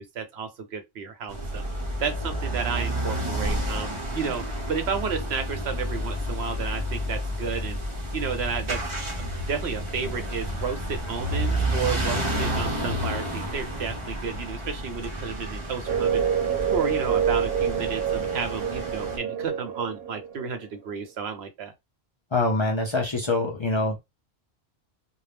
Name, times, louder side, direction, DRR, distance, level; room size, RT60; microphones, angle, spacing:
voice 1, 0.0-1.6 2.0-7.8 8.1-8.8 9.1-16.2 16.7-21.7, right 6 dB, 90° right, 1.0 m, -32 dB
sound 1, 1.3-19.2, equal, 35° right, 0.6 m, -30 dB
sound 2, 15.9-20.7, right 8 dB, 60° right, 0.9 m, -27 dB
voice 2, 22.3-24.0, left 2 dB, 40° left, 0.5 m, -24 dB
2.6 x 2.1 x 3.3 m
omnidirectional pair, 1.0 m